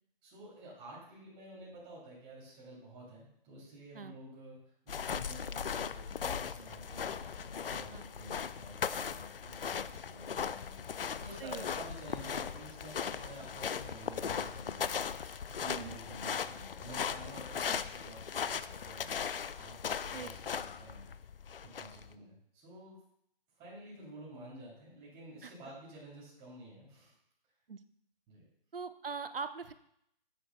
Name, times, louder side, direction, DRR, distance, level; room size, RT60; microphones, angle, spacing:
voice 1, 0.2-4.6 4.8-10.8 11.2-21.1 21.6-23.0 23.6-27.1 28.3-28.4, right 1 dB, 20° right, -6 dB, 3.0 m, -51 dB
sound 1, 4.9-22.1, left 7 dB, 70° left, 0.4 m, -38 dB
voice 2, 15.6-16.0 17.7-17.8 20.1-20.3 25.4-25.5 27.7-27.8 28.7-29.7, right 5 dB, 70° right, 10 dB, 0.8 m, -42 dB
9.7 x 9.0 x 2.3 m, 0.72 s
figure-of-eight pair, 135°, 29 cm